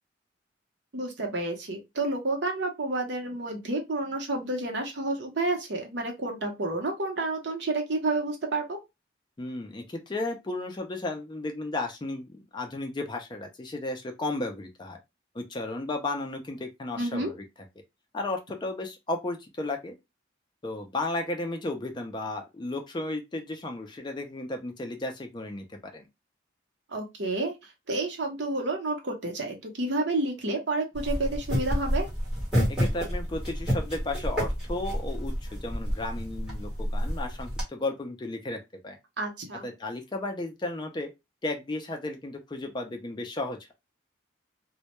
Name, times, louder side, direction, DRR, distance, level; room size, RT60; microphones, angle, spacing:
voice 1, 0.9-8.8 17.0-17.3 26.9-32.1 39.2-39.7, right 2 dB, 65° right, 0.7 m, -30 dB
voice 2, 9.4-15.0 15.3-17.4 18.1-20.0 20.6-26.1 32.7-39.0 39.6-41.1 41.4-43.7, left 2 dB, 25° left, 0.3 m, -34 dB
sound 1, 30.9-37.6, equal, 5° right, 1.0 m, -29 dB
2.1 x 2.1 x 2.8 m
head